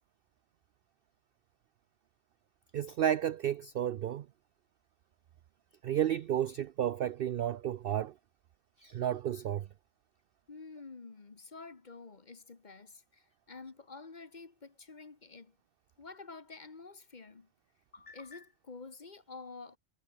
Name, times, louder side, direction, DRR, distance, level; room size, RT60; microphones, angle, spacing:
voice 1, 2.7-4.3 5.8-8.1 8.8-9.7, right 10 dB, 65° right, 0.6 m, -32 dB
voice 2, 10.5-15.5 16.0-17.5 17.9-19.8, left 4 dB, 35° left, 1.4 m, -49 dB
omnidirectional pair, 1.4 m